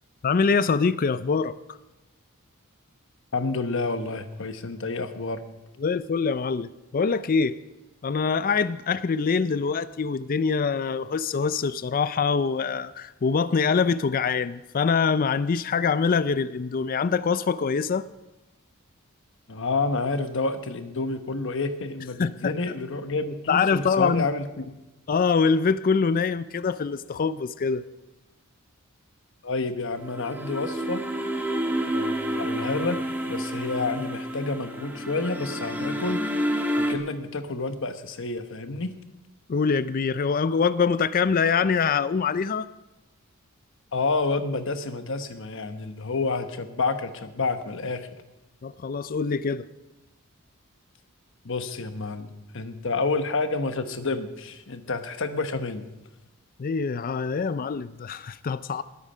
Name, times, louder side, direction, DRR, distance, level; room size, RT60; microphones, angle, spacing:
voice 1, 0.2-1.8 5.8-7.6 8.0-18.0 22.2-22.6 23.5-24.3 25.1-27.8 39.5-42.7 48.6-49.6 56.6-58.8, left 5 dB, 40° left, 15 dB, 0.4 m, -24 dB
voice 2, 3.3-5.4 19.5-24.7 29.4-31.0 31.9-36.2 36.8-38.9 43.9-48.1 51.4-55.9, left 3 dB, 60° left, 9 dB, 1.1 m, -29 dB
sound 1, 30.0-37.0, equal, 10° right, 1.5 m, -29 dB
20.0 x 8.4 x 5.5 m, 1.0 s
head